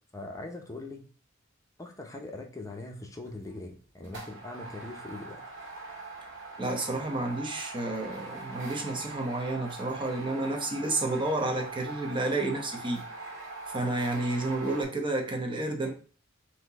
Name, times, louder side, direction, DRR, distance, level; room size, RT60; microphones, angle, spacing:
voice 1, 0.1-1.0 1.8-5.4 15.8-15.9, left 2 dB, 15° left, 2 dB, 0.7 m, -41 dB
sound 1, 3.3-3.5 4.0-14.8, right 3 dB, 70° right, 1.7 m, -42 dB
voice 2, 6.6-13.3 13.7-15.9, right 2 dB, 25° right, 2 dB, 0.9 m, -31 dB
4.3 x 2.8 x 4.0 m, 0.40 s
head